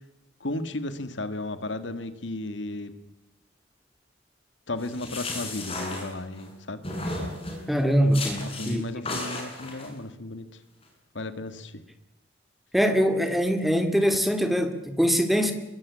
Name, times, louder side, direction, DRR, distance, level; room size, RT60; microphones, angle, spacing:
voice 1, 0.4-2.9 4.7-6.8 8.4-10.5 11.1-11.7, left 2 dB, 80° left, 11 dB, 2.0 m, -34 dB
sound 1, 4.8-6.5 6.8-7.7 8.1-8.7 9.1-9.9, left 2 dB, 30° left, 6.9 m, -34 dB
voice 2, 7.7-8.9 12.7-15.5, equal, ahead, 7 dB, 2.3 m, -23 dB
23.5 x 22.5 x 8.6 m, 0.89 s
head